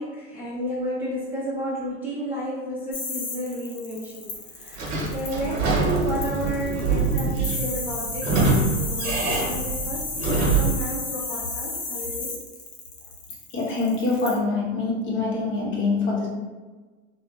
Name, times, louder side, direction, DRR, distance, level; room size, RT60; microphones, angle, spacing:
voice 1, 0.0-12.4, equal, 5° right, -9 dB, 0.6 m, -32 dB
sound 1, 2.9-14.4, left 3 dB, 70° left, 1.0 m, -33 dB
Sliding door / Squeak, 4.7-10.9, right 3 dB, 65° right, 0.9 m, -24 dB
voice 2, 13.5-16.3, left 3 dB, 35° left, -4 dB, 0.8 m, -25 dB
2.9 x 2.0 x 2.3 m, 1.3 s
hypercardioid pair, 100°, 34 cm